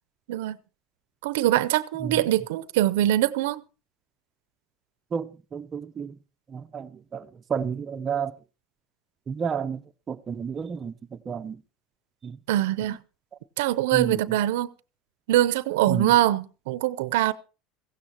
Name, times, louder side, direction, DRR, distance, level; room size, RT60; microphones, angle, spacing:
voice 1, 1.2-3.6 12.5-13.0 13.6-14.7 15.3-17.3, right 14 dB, 85° right, 0.6 m, -23 dB
voice 2, 5.1-6.2 6.5-8.3 9.3-11.6 12.2-12.4 13.9-14.4 15.9-16.1, right 6 dB, 30° right, 0.6 m, -31 dB
16.0 x 16.0 x 2.9 m
supercardioid pair, 120°, 0 cm